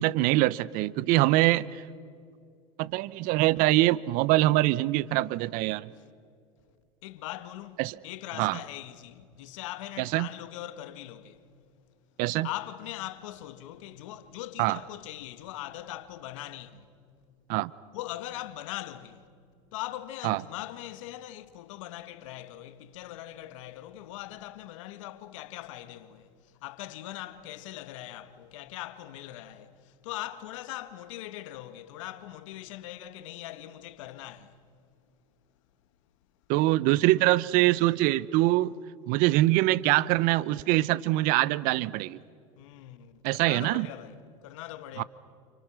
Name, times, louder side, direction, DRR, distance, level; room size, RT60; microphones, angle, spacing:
voice 1, 0.0-1.8 2.8-5.9 7.8-7.9 8.4-8.6 10.0-10.3 12.2-12.5 14.6-14.8 17.5-17.7 20.2-20.4 36.5-38.7 39.1-42.2 43.2-43.9 45.0-45.1, right 18 dB, 55° right, 0.8 m, -24 dB
voice 2, 7.0-11.4 12.4-16.9 17.9-19.3 19.7-34.6 42.6-45.0, left 14 dB, 75° left, 1.9 m, -41 dB
29.5 x 29.5 x 6.4 m
hypercardioid pair, 105°, 17 cm